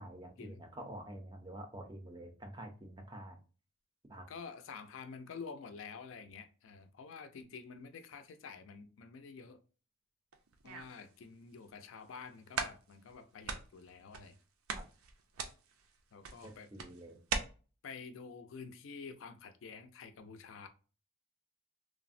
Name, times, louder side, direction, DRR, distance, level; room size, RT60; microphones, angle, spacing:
voice 1, 0.0-3.4 4.1-4.3 14.7-14.8 16.4-17.2, right 1 dB, 20° right, 0.4 m, -48 dB
voice 2, 4.3-9.6 10.6-14.4 16.1-16.7 17.8-20.7, left 5 dB, 70° left, 0.4 m, -49 dB
sound 1, 10.3-11.1 11.7-11.8 12.2-12.3 12.5-13.2 13.4-14.4 14.7-17.4, right 5 dB, 85° right, 0.5 m, -40 dB
3.3 x 2.0 x 2.5 m
head